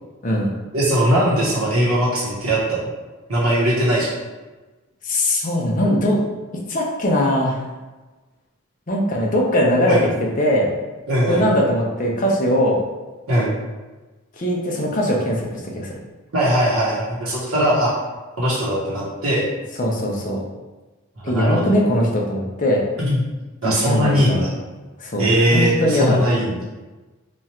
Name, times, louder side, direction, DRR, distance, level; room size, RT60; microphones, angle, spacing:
voice 1, 0.7-2.9 3.3-4.2 9.9-10.1 11.1-11.5 13.3-13.5 16.3-17.9 18.4-19.5 21.2-21.9 23.0-23.2 23.6-24.5 25.2-26.6, equal, 75° right, -5 dB, 1.0 m, -20 dB
voice 2, 5.0-6.2 6.7-7.6 8.9-10.7 11.2-12.8 14.4-15.9 19.8-20.4 21.2-22.9 23.6-24.4 25.0-25.3 25.5-26.2, left 1 dB, 35° left, -1 dB, 0.6 m, -20 dB
3.0 x 2.4 x 4.3 m, 1.2 s
head